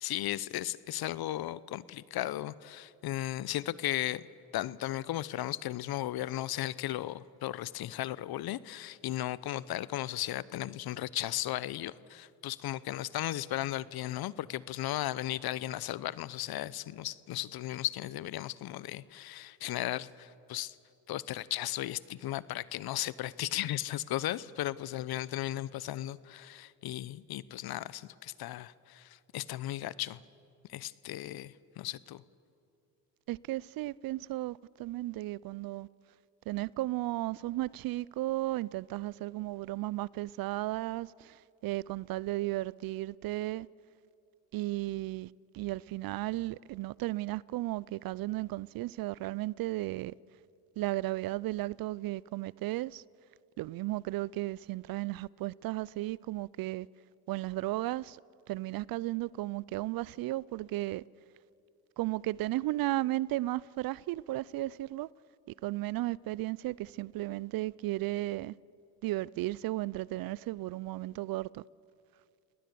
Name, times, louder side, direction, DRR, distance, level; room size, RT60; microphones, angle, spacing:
voice 1, 0.0-4.3 4.5-20.7 21.1-30.2 30.7-32.2, left 14 dB, 55° left, 0.8 m, -36 dB
voice 2, 33.3-35.9 36.5-43.7 44.5-50.1 50.8-53.0 53.6-56.9 57.3-58.2 58.5-61.0 62.0-65.1 65.6-68.5 69.0-71.6, right 17 dB, 50° right, 0.5 m, -34 dB
29.5 x 19.0 x 6.9 m
supercardioid pair, 70°, 46 cm